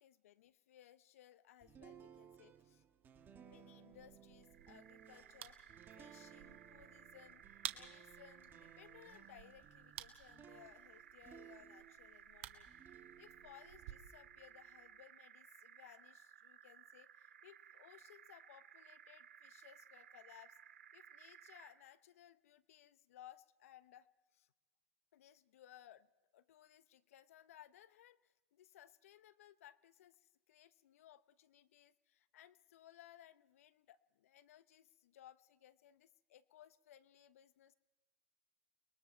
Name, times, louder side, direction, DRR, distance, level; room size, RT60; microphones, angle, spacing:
voice 1, 0.0-2.9 3.4-7.4 7.7-20.6 20.9-24.5 25.1-37.7, left 12 dB, 75° left, 17 dB, 0.9 m, -62 dB
sound 1, 1.6-12.2 12.7-15.0, right 8 dB, 25° right, 1.7 m, -61 dB
sound 2, 3.9-13.9, right 13 dB, 65° right, 1.6 m, -54 dB
sound 3, 4.4-21.9, right 8 dB, 90° right, 2.6 m, -60 dB
30.0 x 21.0 x 4.5 m, 1.2 s
hypercardioid pair, 125°, 8 cm